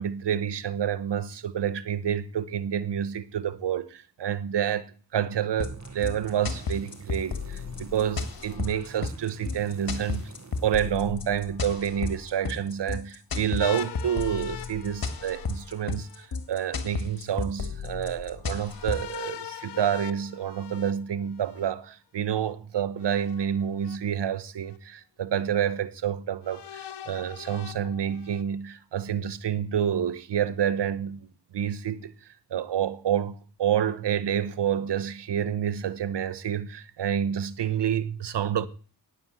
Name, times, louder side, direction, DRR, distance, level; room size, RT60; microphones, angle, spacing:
voice 1, 0.0-10.2 10.6-31.2 31.5-32.1 32.5-38.7, right 9 dB, 80° right, 1.0 m, -28 dB
sound 1, 5.6-19.2, left 4 dB, 60° left, 1.8 m, -33 dB
sound 2, 5.6-11.8, right 5 dB, 40° right, 1.4 m, -48 dB
sound 3, 13.6-16.3 18.7-21.7 23.0-24.0 24.7-24.8 26.4-28.4, left 10 dB, 75° left, 0.9 m, -42 dB
9.8 x 9.3 x 8.1 m
cardioid pair, 50°, 41 cm